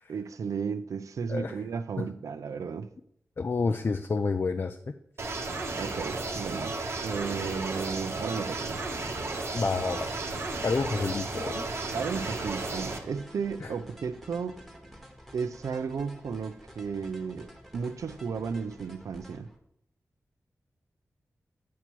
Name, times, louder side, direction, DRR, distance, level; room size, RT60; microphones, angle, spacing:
voice 1, 0.1-2.9 5.8-8.8 11.9-14.6 15.3-19.5, right 6 dB, 90° right, 0.4 m, -34 dB
voice 2, 3.4-4.9 9.5-10.1 10.6-11.6 13.6-13.7, left 4 dB, 45° left, 0.4 m, -29 dB
sound 1, 5.2-13.0, right 3 dB, 55° right, 0.9 m, -34 dB
sound 2, 8.4-19.6, equal, ahead, 1.1 m, -49 dB
8.2 x 3.0 x 6.0 m
wide cardioid pair, 75°, 5 cm